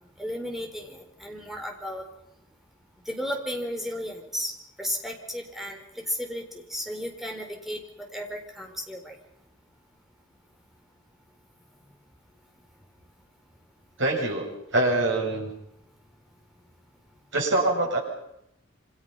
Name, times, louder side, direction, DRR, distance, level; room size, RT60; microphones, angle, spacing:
voice 1, 0.2-2.0 3.1-4.5 4.8-5.8 6.1-6.4 6.7-7.8 8.1-9.1, equal, ahead, 2 dB, 4.4 m, -33 dB
voice 2, 14.0-15.5 17.3-18.0, right 2 dB, 70° right, 0 dB, 7.9 m, -24 dB
28.0 x 26.0 x 5.9 m, 0.77 s
head